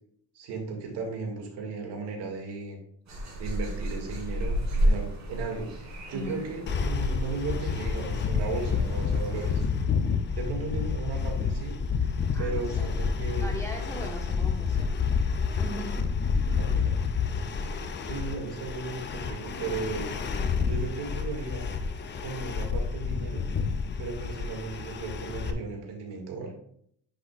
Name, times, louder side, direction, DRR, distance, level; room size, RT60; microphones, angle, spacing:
voice 1, 0.3-2.8 3.4-5.7 6.1-9.6 10.3-11.8 12.4-13.6 16.6-16.9 17.3-17.4 18.1-20.1 20.6-21.6 22.2-23.5 24.0-26.5, right 4 dB, 90° right, 1 dB, 2.2 m, -35 dB
sound 1, 3.1-9.7, equal, 45° right, 2.8 m, -32 dB
voice 2, 6.1-6.4 12.3-13.1 13.4-15.2 15.6-16.0 16.3-16.6, equal, 5° left, 0 dB, 1.2 m, -40 dB
sound 2, 6.7-25.5, left 5 dB, 30° left, 0.5 m, -29 dB
9.7 x 6.2 x 2.4 m, 0.66 s
cardioid pair, 175°, 40 cm